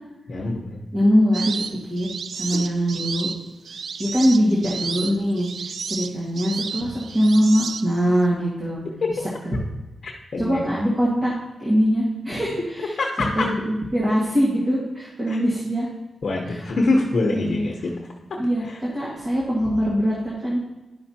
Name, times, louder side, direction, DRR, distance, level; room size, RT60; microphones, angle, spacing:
voice 1, 0.3-0.8 9.0-9.1 10.0-10.6 13.0-13.5 15.3-15.4 16.2-17.9 18.3-18.4 18.7-18.8, left 2 dB, 55° left, -1 dB, 0.9 m, -24 dB
voice 2, 0.9-1.6 1.9-2.1 2.3-3.3 4.0-5.5 5.9-8.8 9.4-9.5 10.4-11.3 11.6-13.0 13.3-15.9 16.4-16.6 17.3-17.6 18.4-20.6, equal, 25° right, -6 dB, 1.7 m, -22 dB
sound 1, 1.3-8.2, right 5 dB, 65° right, 0.3 m, -32 dB
11.0 x 5.6 x 2.8 m, 1.1 s
wide cardioid pair, 135°, 0 cm